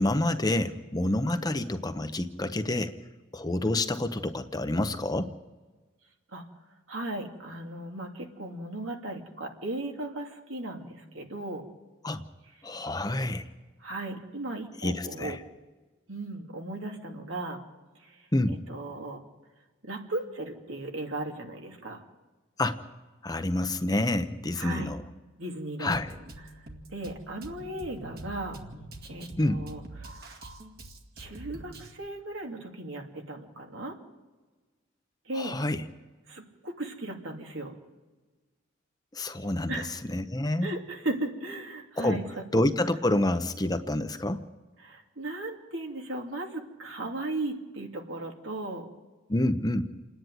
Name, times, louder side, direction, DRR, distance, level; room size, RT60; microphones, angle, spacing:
voice 1, 0.0-2.9 3.3-5.3 12.0-12.2 12.6-13.5 14.8-15.4 18.3-18.6 22.6-22.8 23.2-25.0 25.8-26.1 29.4-29.6 35.4-35.8 39.1-39.8 40.1-40.7 42.0-42.2 42.5-44.4 49.3-49.8, left 1 dB, 20° left, 9 dB, 0.8 m, -28 dB
voice 2, 6.9-11.7 13.8-15.4 16.1-17.6 18.0-19.2 19.8-22.0 24.6-25.0 25.4-26.0 26.9-28.6 29.1-30.2 31.2-34.0 35.3-35.6 36.3-37.8 39.7-39.9 40.6-42.3 44.8-48.9, right 2 dB, 80° right, 2 dB, 2.8 m, -36 dB
Drum kit, 25.9-31.9, right 2 dB, 50° right, 2.2 m, -45 dB
28.5 x 10.0 x 9.3 m, 1.3 s
head